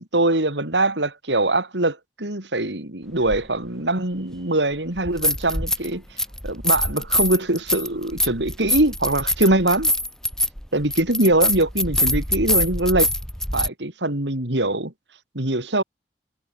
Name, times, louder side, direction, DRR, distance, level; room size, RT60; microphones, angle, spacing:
voice 1, 0.1-6.0 6.4-9.9 10.7-13.1 13.5-14.9 15.3-15.8, right 2 dB, 80° right, 4.3 m, -22 dB
sound 1, 3.3-3.4 5.0-5.9 6.2-13.7, left 1 dB, 5° left, 6.0 m, -24 dB
head